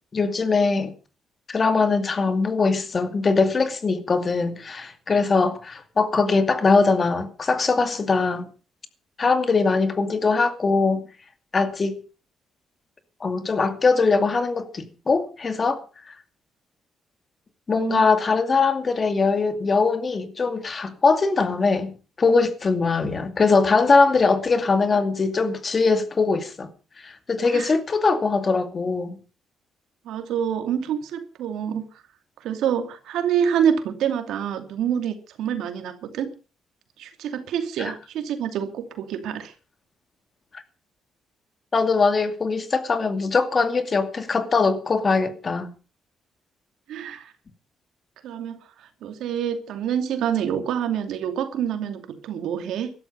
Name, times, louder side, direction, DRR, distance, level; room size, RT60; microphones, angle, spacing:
voice 1, 0.1-0.9 1.5-8.5 9.2-11.1 11.5-12.0 13.2-15.8 17.7-26.7 27.0-29.2 41.7-45.7, left 4 dB, 35° left, 2.4 m, -21 dB
voice 2, 30.0-31.9 32.4-36.3 37.0-39.5 46.9-47.3 48.2-52.9, right 8 dB, 80° right, 2.5 m, -27 dB
16.0 x 13.0 x 5.4 m
cardioid pair, 90°, 0 cm